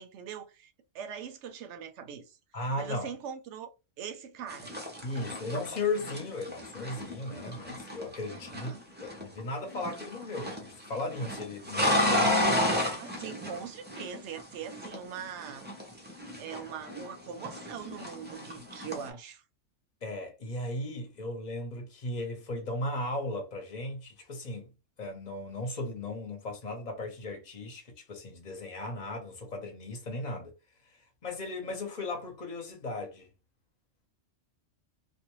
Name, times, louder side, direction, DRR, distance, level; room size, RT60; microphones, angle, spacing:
voice 1, 0.0-2.4 2.8-3.7 4.0-4.7 8.3-8.8 12.9-15.7 16.4-19.4 31.6-31.8, right 7 dB, 70° right, 0.9 m, -42 dB
voice 2, 2.5-3.1 5.0-8.7 9.0-12.4 12.8-13.1 20.0-24.7 25.0-30.5 30.9-33.3, left 2 dB, 40° left, 0.8 m, -36 dB
sound 1, 4.5-9.4 9.7-10.7 10.9-14.4 14.7-17.1 17.4-19.1, left 1 dB, 15° right, 0.4 m, -32 dB
2.5 x 2.2 x 3.0 m
omnidirectional pair, 1.3 m